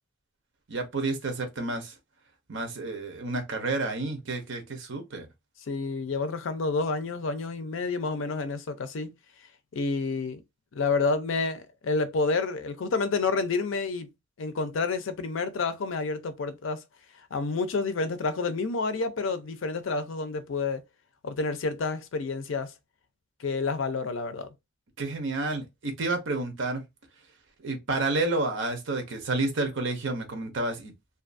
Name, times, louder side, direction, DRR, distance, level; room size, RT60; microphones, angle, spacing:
voice 1, 0.7-1.9 2.5-5.3 25.0-26.8 27.6-30.9, right 2 dB, 70° right, 0.8 m, -30 dB
voice 2, 5.7-9.1 9.7-10.4 10.7-14.1 14.4-16.8 17.3-20.8 21.2-22.7 23.4-24.5, left 4 dB, 75° left, 0.5 m, -29 dB
2.6 x 2.3 x 2.5 m
head